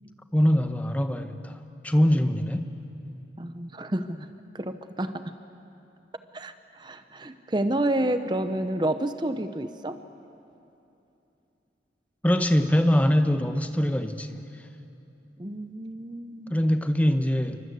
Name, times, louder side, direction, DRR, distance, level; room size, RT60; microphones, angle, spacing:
voice 1, 0.3-1.6 1.8-2.7 12.2-14.4 16.5-17.6, equal, 10° left, 8 dB, 0.9 m, -23 dB
voice 2, 3.4-4.3 4.5-5.2 6.3-10.0 15.4-16.6, right 1 dB, 25° right, 9 dB, 0.7 m, -29 dB
27.5 x 24.0 x 8.2 m, 2.8 s
head